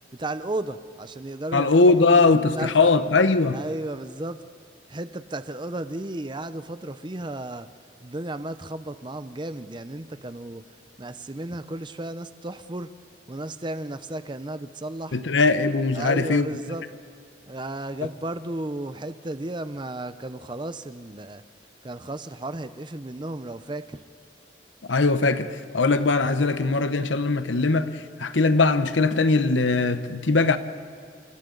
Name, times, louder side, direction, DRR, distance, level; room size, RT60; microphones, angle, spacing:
voice 1, 0.1-2.3 2.6-2.9 3.5-4.4 4.9-7.7 8.0-10.6 11.0-12.9 13.3-15.2 15.9-16.9 17.5-21.4 21.8-24.0, right 1 dB, 25° right, 0.6 m, -34 dB
voice 2, 1.5-3.6 15.1-16.5 24.9-30.6, left 3 dB, 80° left, 0.9 m, -20 dB
29.5 x 28.5 x 3.9 m
head